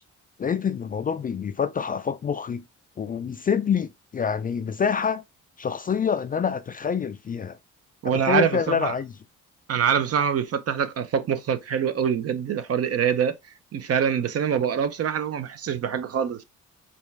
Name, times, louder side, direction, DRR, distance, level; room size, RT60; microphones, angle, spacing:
voice 1, 0.4-2.6 3.0-5.2 5.6-7.6 8.1-9.1, left 6 dB, 30° left, 0.3 m, -26 dB
voice 2, 8.0-8.9 9.7-13.3 13.7-16.4, right 8 dB, 50° right, 0.7 m, -24 dB
5.1 x 2.4 x 3.3 m
cardioid pair, 90°, 30 cm